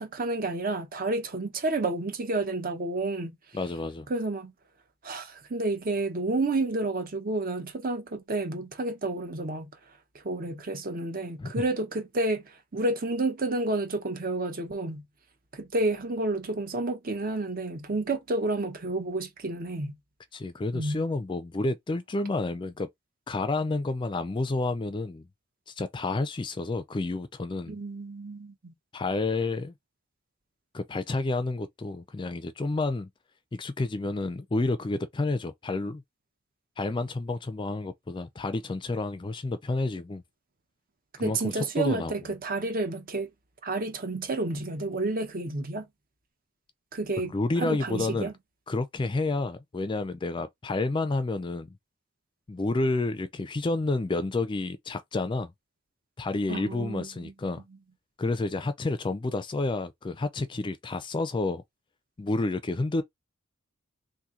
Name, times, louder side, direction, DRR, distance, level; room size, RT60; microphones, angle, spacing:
voice 1, 0.0-3.4 4.1-4.5 5.0-9.7 10.1-15.0 15.5-20.0 20.7-21.0 27.7-28.7 41.2-43.3 43.6-45.9 46.9-48.3 56.5-57.3, right 2 dB, 45° right, 0.7 m, -30 dB
voice 2, 3.5-4.1 11.4-11.6 20.3-22.9 23.3-25.3 25.7-27.7 28.9-29.7 30.7-33.1 33.5-36.0 36.8-40.2 41.2-42.1 47.2-48.3 48.7-51.7 52.5-55.5 56.2-57.6 58.2-61.6 62.2-63.0, left 2 dB, 25° left, 0.3 m, -30 dB
2.8 x 2.6 x 3.7 m
head